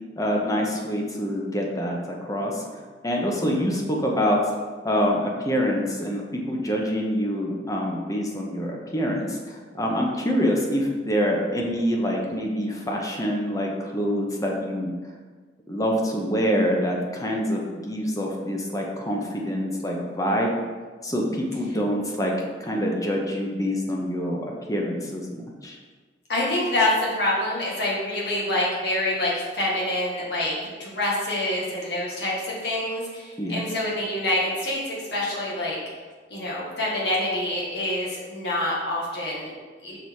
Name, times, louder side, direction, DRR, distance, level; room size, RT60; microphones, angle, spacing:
voice 1, 0.2-2.7 3.0-4.4 4.8-14.9 15.7-20.5 21.0-25.8 33.4-33.7, equal, 20° left, -1 dB, 1.0 m, -26 dB
voice 2, 26.3-30.5 30.8-35.8 36.3-39.5 39.8-40.0, left 1 dB, 65° left, -5 dB, 2.0 m, -26 dB
6.2 x 4.2 x 4.7 m, 1.4 s
head